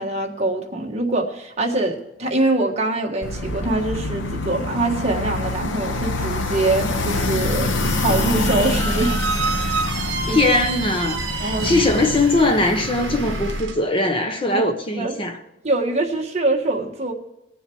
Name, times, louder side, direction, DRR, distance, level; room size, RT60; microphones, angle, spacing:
voice 1, 0.0-9.2 10.3-10.4 11.4-11.7 14.4-14.6 15.0-15.2 15.6-17.1, right 2 dB, 30° right, 1 dB, 1.6 m, -23 dB
sound 1, 3.2-13.6, left 2 dB, 70° left, 1.0 m, -25 dB
Squeak, 7.7-13.8, right 5 dB, 60° right, 1.2 m, -30 dB
voice 2, 10.3-15.4, left 2 dB, 25° left, 5 dB, 1.0 m, -20 dB
18.5 x 7.1 x 4.6 m, 0.88 s
head